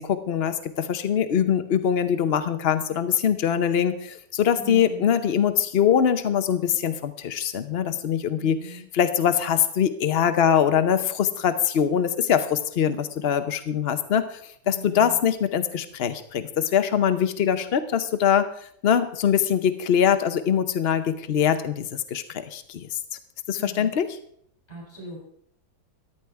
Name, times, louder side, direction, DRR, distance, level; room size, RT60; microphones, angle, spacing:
voice 1, 0.0-14.4 14.7-18.5 18.8-23.0 23.5-24.2, left 8 dB, 80° left, 10 dB, 0.5 m, -23 dB
voice 2, 4.6-5.1 8.4-8.9 14.6-15.2 23.6-24.0 24.7-25.2, right 2 dB, 20° left, -5 dB, 7.0 m, -40 dB
14.0 x 11.0 x 4.6 m, 0.67 s
omnidirectional pair, 2.1 m